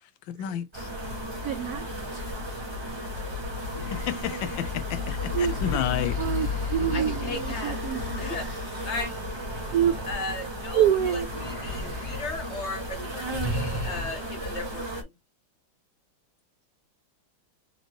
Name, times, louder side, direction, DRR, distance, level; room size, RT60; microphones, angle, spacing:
voice 1, 0.3-0.9 3.9-6.2, left 10 dB, 75° left, 1.3 m, -31 dB
sound 1, 0.7-15.0, left 2 dB, 20° right, 0.8 m, -34 dB
voice 2, 1.4-2.2 5.3-5.6 6.2-8.0 9.7-9.9 10.7-11.3 13.0-13.1, right 9 dB, 80° right, 0.8 m, -26 dB
sound 2, 3.7-10.9 11.3-12.5 12.8-13.0 13.3-14.5, left 1 dB, 25° left, 0.4 m, -38 dB
voice 3, 6.9-7.9 8.2-9.1 9.5-9.6 10.1-15.1, left 2 dB, 45° left, 1.1 m, -36 dB
4.4 x 3.2 x 2.9 m
omnidirectional pair, 2.2 m